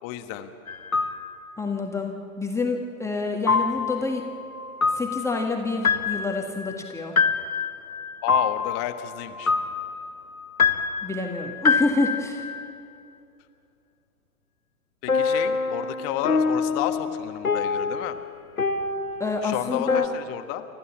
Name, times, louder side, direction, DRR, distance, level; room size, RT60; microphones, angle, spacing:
voice 1, 0.0-0.5 8.2-9.5 15.0-18.2 19.4-20.7, left 12 dB, 35° left, 8 dB, 1.4 m, -31 dB
sound 1, 0.7-1.4 3.5-12.7 15.1-20.1, left 5 dB, 85° left, 1.0 m, -26 dB
voice 2, 1.6-4.3 4.9-7.1 11.0-12.5 19.2-20.1, left 3 dB, 5° left, 1 dB, 1.6 m, -28 dB
30.0 x 14.0 x 7.2 m, 2.6 s
figure-of-eight pair, 100°, 41 cm